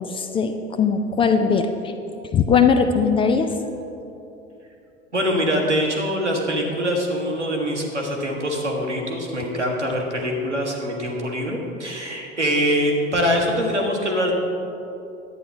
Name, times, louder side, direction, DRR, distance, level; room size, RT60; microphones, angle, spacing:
voice 1, 0.0-1.9 2.3-3.5, left 6 dB, 15° left, 7 dB, 0.3 m, -20 dB
voice 2, 5.1-14.3, equal, 90° right, 0 dB, 1.2 m, -23 dB
10.5 x 8.7 x 3.3 m, 2.8 s
figure-of-eight pair, 75°, 34 cm